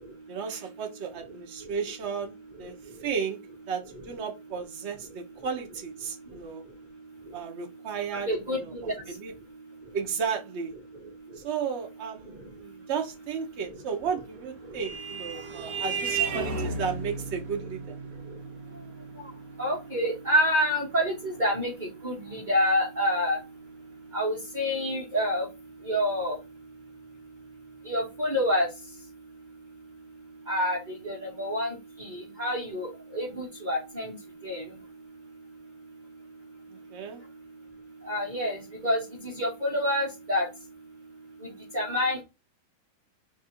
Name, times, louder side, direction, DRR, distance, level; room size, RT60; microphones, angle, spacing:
voice 1, 0.3-2.7 3.0-3.4 3.7-6.6 7.3-8.7 9.1-9.3 9.9-10.7 11.4-18.0 36.9-37.2, right 6 dB, 85° right, 3 dB, 0.6 m, -34 dB
voice 2, 8.3-8.8 19.6-21.7 22.0-23.4 24.1-25.5 25.9-26.3 27.9-28.7 30.5-30.8 31.0-31.7 32.4-34.1 34.4-34.6 38.0-38.6 38.8-39.0 39.4-40.5 41.7-42.2, equal, 30° right, -3 dB, 0.9 m, -27 dB
Vehicle horn car horn honking, 14.2-23.2, right 5 dB, 55° right, 1.0 m, -36 dB
3.5 x 2.5 x 4.2 m, 0.26 s
omnidirectional pair, 2.3 m